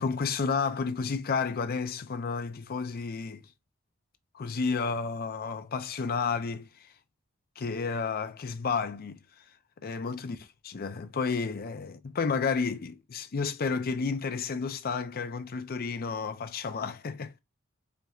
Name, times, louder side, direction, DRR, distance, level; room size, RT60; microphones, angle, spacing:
voice 1, 0.0-3.4 4.3-6.7 7.6-9.2 9.8-10.4 10.7-17.4, left 5 dB, 45° left, 0.5 m, -31 dB
5.1 x 3.0 x 2.3 m
head